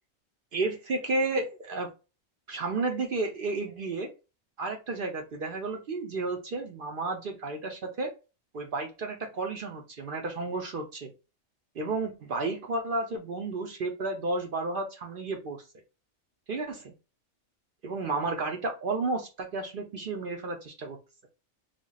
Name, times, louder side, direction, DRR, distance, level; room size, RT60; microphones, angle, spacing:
voice 1, 0.5-1.9 2.5-4.1 4.6-8.1 8.5-11.1 11.8-15.6 16.5-16.9 17.8-21.0, right 3 dB, 55° right, 2 dB, 0.7 m, -32 dB
3.2 x 2.3 x 3.8 m, 0.30 s
omnidirectional pair, 1.2 m